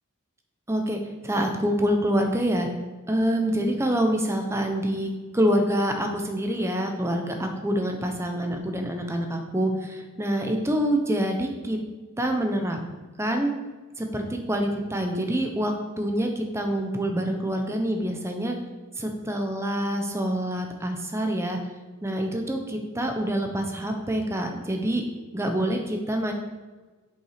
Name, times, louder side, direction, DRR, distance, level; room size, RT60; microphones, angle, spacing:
voice 1, 0.7-2.7 3.1-11.8 12.2-12.8 13.2-13.5 14.0-18.5 19.0-21.6 22.0-25.0 25.3-26.3, equal, 15° right, 3 dB, 0.9 m, -26 dB
7.2 x 5.6 x 5.0 m, 1.3 s
head